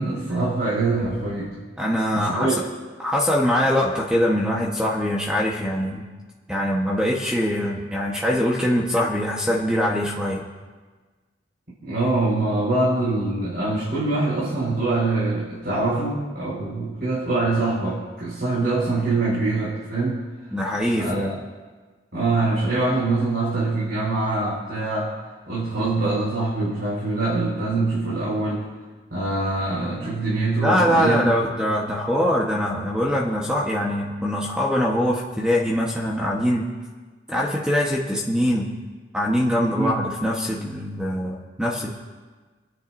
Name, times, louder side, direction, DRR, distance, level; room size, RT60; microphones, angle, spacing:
voice 1, 0.0-1.5 2.1-2.7 11.8-20.2 20.9-21.4 22.1-25.1 25.5-28.6 29.1-31.3 39.7-40.0, right 2 dB, 60° right, -8 dB, 4.7 m, -24 dB
voice 2, 1.8-2.5 3.0-6.0 6.5-10.4 20.5-21.4 30.6-36.7 37.3-38.7 39.1-41.9, equal, 5° right, -3 dB, 1.1 m, -23 dB
30.0 x 10.0 x 2.6 m, 1.4 s
head